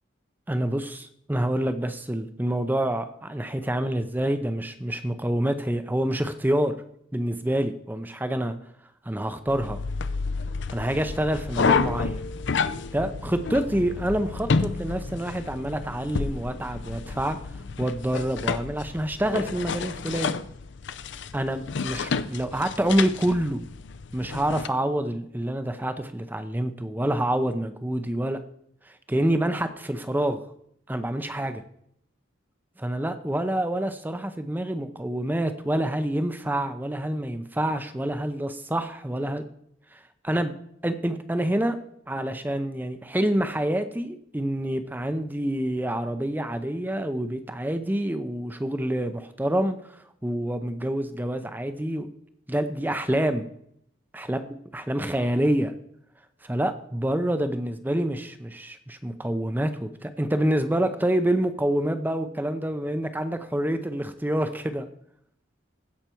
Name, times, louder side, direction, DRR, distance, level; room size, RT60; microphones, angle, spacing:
voice 1, 0.5-6.7 7.1-8.6 9.0-9.8 10.7-12.2 12.9-17.4 17.8-20.3 21.3-23.6 24.1-28.4 28.9-30.4 30.9-31.6 32.8-39.4 39.9-40.6 40.8-41.8 42.1-52.1 52.5-53.5 54.1-54.4 54.7-55.7 56.4-64.9, right 1 dB, 10° right, 10 dB, 0.6 m, -27 dB
sound 1, 9.5-24.7, left 4 dB, 60° left, 0.5 m, -30 dB
16.0 x 5.9 x 4.5 m, 0.70 s
head